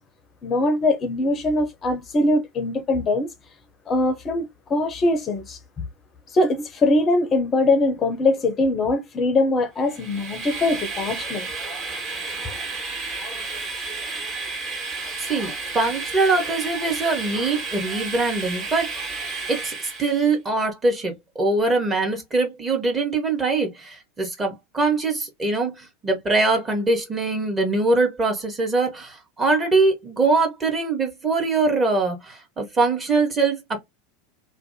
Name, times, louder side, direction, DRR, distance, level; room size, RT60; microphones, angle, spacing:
voice 1, 0.4-3.3 3.9-5.6 6.3-11.5, left 2 dB, 30° left, 0.5 m, -22 dB
Train, 9.8-20.3, right 4 dB, 40° right, 1.3 m, -32 dB
voice 2, 15.2-18.9 19.5-33.6, right 3 dB, 20° right, 1.0 m, -23 dB
2.5 x 2.1 x 2.6 m
figure-of-eight pair, 85°, 0 cm